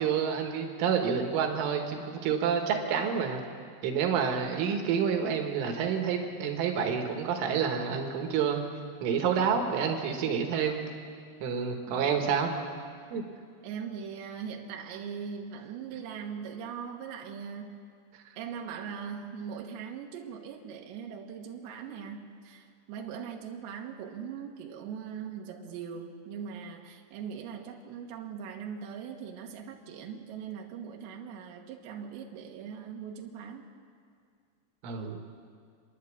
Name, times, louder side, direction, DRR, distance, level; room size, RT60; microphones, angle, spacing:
voice 1, 0.0-3.4 3.8-8.6 9.0-10.8 11.4-12.5 13.1-13.2 34.8-35.2, right 7 dB, 90° right, 3 dB, 4.0 m, -28 dB
voice 2, 11.9-12.2 13.6-17.8 18.4-33.6, right 7 dB, 70° right, 1 dB, 3.5 m, -40 dB
28.5 x 11.0 x 8.4 m, 2.2 s
omnidirectional pair, 5.5 m